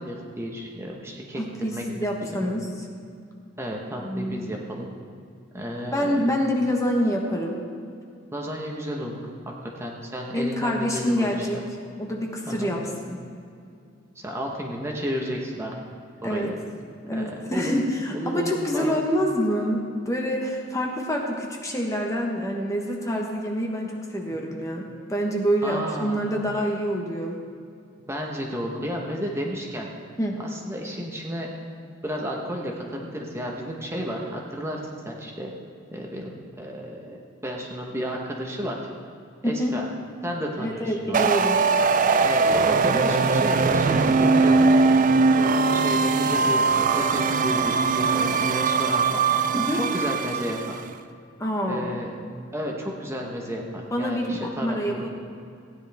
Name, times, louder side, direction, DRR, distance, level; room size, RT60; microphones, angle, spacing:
voice 1, 0.0-1.4 1.7-1.8 2.3-2.5 3.6-4.9 5.5-6.2 8.3-9.2 9.6-11.6 12.5-12.7 14.2-15.7 16.2-16.6 17.1-17.7 18.1-19.0 25.6-26.5 28.1-29.9 30.5-31.5 32.0-34.8 35.0-35.5 35.9-37.2 37.4-38.8 39.4-39.9 40.2-41.3 42.2-44.7 45.3-49.2 49.7-50.8 51.7-52.1 52.5-55.1, equal, 15° right, -1 dB, 1.0 m, -32 dB
voice 2, 1.4-2.7 4.0-4.5 5.9-7.6 10.3-11.6 12.0-13.2 16.2-16.5 17.1-27.4 30.2-30.4 39.4-39.7 40.6-41.6 49.6-49.8 51.4-51.9 53.9-55.1, equal, 15° left, 0 dB, 1.1 m, -26 dB
sound 1, 41.1-50.8, right 4 dB, 40° right, 0.4 m, -21 dB
16.0 x 10.0 x 3.5 m, 2.4 s
head